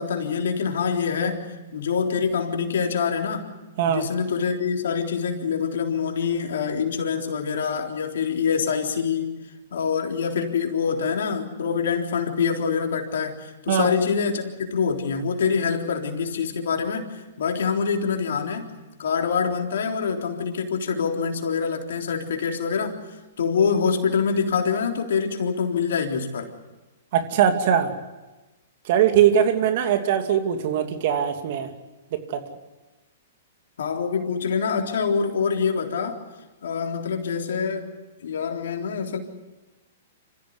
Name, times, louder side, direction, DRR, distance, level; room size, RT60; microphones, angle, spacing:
voice 1, 0.0-3.5 3.9-9.3 9.7-18.7 19.0-23.0 23.4-26.5 33.8-36.2 36.6-37.9 38.2-39.2, left 6 dB, 75° left, 2 dB, 3.7 m, -25 dB
voice 2, 27.1-27.9 28.8-31.7 32.1-32.4, right 9 dB, 55° right, 6 dB, 2.8 m, -21 dB
27.0 x 15.0 x 9.7 m, 1.1 s
hypercardioid pair, 120°, 0 cm